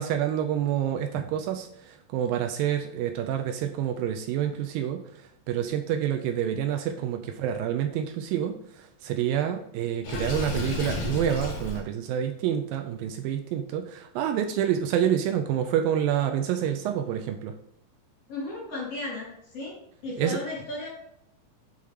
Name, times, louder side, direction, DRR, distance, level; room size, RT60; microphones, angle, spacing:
voice 1, 0.0-5.0 5.5-8.6 9.0-17.5 20.2-20.4, right 10 dB, 80° right, 6 dB, 2.2 m, -28 dB
Water / Sink (filling or washing), 10.0-11.8, left 3 dB, 75° left, 1.3 m, -31 dB
voice 2, 18.3-19.7 20.0-20.9, left 2 dB, 45° left, -5 dB, 2.9 m, -35 dB
6.9 x 3.6 x 4.7 m, 0.74 s
omnidirectional pair, 4.3 m